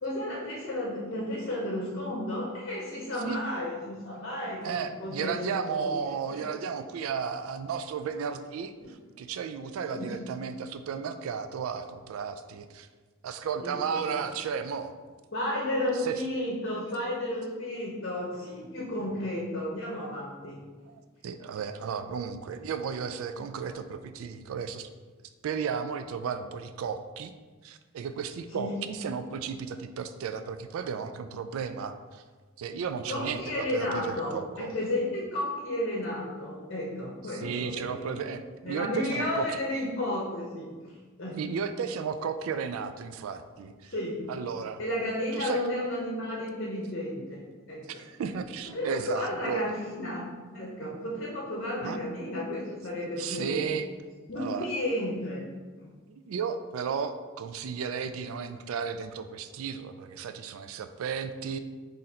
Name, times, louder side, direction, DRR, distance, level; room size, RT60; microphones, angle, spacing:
voice 1, 0.0-5.8 6.3-6.4 9.9-10.1 13.6-14.1 15.3-20.6 28.5-28.8 33.1-38.2 38.6-40.9 41.2-41.4 43.9-44.2 44.8-47.4 47.7-48.0 48.7-50.2 50.5-53.8 54.3-55.4 55.8-55.9, left 1 dB, 50° left, -4 dB, 0.8 m, -33 dB
voice 2, 4.6-12.9 13.2-14.9 16.0-16.2 20.8-24.9 25.4-27.3 27.6-32.2 32.6-34.7 37.3-39.5 41.4-43.9 44.3-44.8 45.3-45.6 47.9-49.6 51.8-52.0 53.2-53.9 54.4-54.7 56.1-61.6, right 6 dB, 75° right, 10 dB, 0.3 m, -34 dB
4.0 x 2.6 x 4.2 m, 1.4 s
head